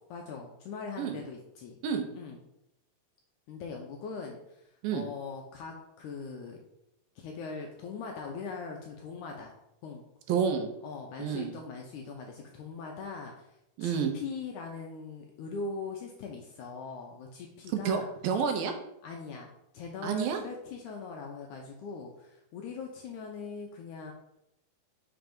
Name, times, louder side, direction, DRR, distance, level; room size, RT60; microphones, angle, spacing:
voice 1, 0.1-1.8 2.1-2.4 3.5-4.6 4.9-6.6 7.2-9.5 9.8-10.0 10.8-13.5 13.8-18.1 19.0-19.5 19.7-24.1, left 4 dB, 75° left, 1 dB, 1.8 m, -41 dB
voice 2, 10.3-10.7 11.2-11.5 13.8-14.1 17.7-18.7 20.0-20.4, right 7 dB, 85° right, 5 dB, 2.5 m, -29 dB
6.1 x 3.3 x 5.2 m, 0.82 s
omnidirectional pair, 4.1 m